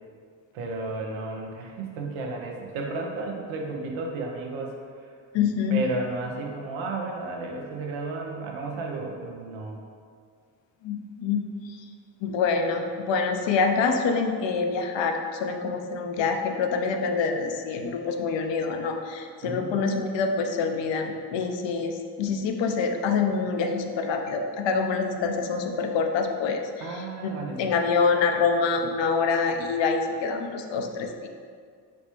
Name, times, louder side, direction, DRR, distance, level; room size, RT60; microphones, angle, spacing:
voice 1, 0.5-4.7 5.0-5.1 5.7-9.8 19.4-19.8 26.8-27.7, right 3 dB, 80° right, 1 dB, 0.6 m, -33 dB
voice 2, 5.3-5.8 10.8-11.5 12.2-27.0 27.6-31.3, left 5 dB, 70° left, 4 dB, 0.5 m, -26 dB
4.2 x 2.1 x 2.9 m, 2.1 s
supercardioid pair, 40°, 47 cm